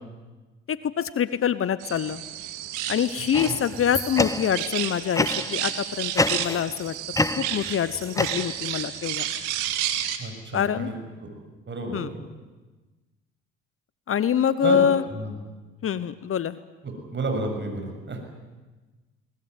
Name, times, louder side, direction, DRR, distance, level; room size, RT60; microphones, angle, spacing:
voice 1, 0.7-2.2 2.9-6.9 7.4-9.3 10.5-10.9 11.9-12.1 14.1-15.0 15.8-16.6, left 8 dB, 45° left, 15 dB, 1.1 m, -25 dB
sound 1, 1.8-10.2, right 11 dB, 80° right, 2.0 m, -31 dB
sound 2, 3.3-4.7 5.1-5.6 6.2-6.8 7.1-8.8, left 2 dB, 10° left, 1.0 m, -28 dB
voice 2, 10.2-11.3 11.7-12.2 14.6-14.8 15.1-15.3 16.8-18.2, right 2 dB, 35° right, 4 dB, 7.0 m, -31 dB
22.0 x 19.5 x 9.5 m, 1.2 s
hypercardioid pair, 60°, 30 cm